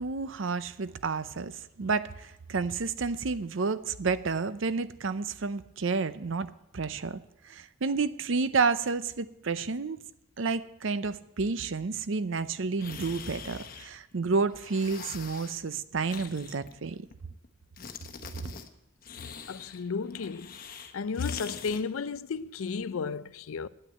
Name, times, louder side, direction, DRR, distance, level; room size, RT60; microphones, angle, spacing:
voice 1, 0.0-7.2 7.4-10.0 10.4-17.1, right 4 dB, 65° right, 0.6 m, -30 dB
sound 1, 12.8-14.2 14.5-15.6 16.1-17.5 17.8-18.7 19.0-21.8, left 6 dB, 45° left, 0.9 m, -44 dB
voice 2, 19.5-20.5 20.9-23.7, left 5 dB, 80° left, 0.5 m, -33 dB
9.2 x 9.0 x 8.9 m
head